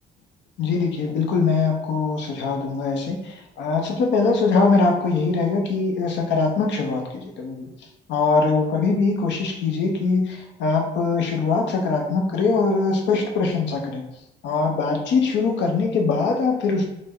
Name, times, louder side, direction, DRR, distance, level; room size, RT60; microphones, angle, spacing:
voice 1, 0.6-14.0 14.4-16.9, left 4 dB, 85° left, 1 dB, 0.6 m, -22 dB
3.2 x 2.0 x 3.5 m, 0.88 s
cardioid pair, 105°, 18 cm